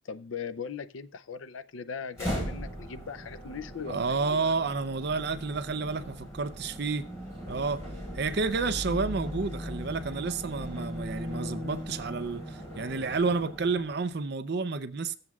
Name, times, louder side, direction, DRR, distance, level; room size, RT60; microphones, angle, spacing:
voice 1, 0.0-4.6, left 6 dB, 80° left, 0.5 m, -39 dB
sound 1, 2.1-14.1, equal, 15° left, 5.0 m, -38 dB
voice 2, 3.9-7.0 7.5-7.8 8.1-15.1, right 4 dB, 55° right, 0.6 m, -30 dB
15.0 x 7.8 x 2.4 m
head